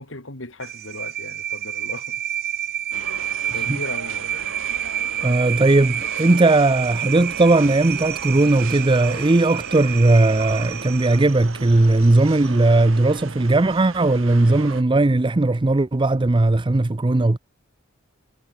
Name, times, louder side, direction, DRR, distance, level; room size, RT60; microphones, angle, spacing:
voice 1, 0.0-2.2 3.0-4.5, left 2 dB, 70° left, 5.3 m, -37 dB
sound 1, 0.6-12.6, right 11 dB, 50° right, 2.6 m, -29 dB
sound 2, 2.9-14.8, right 4 dB, 75° right, 2.4 m, -37 dB
voice 2, 5.2-17.4, right 2 dB, 25° right, 0.6 m, -18 dB
head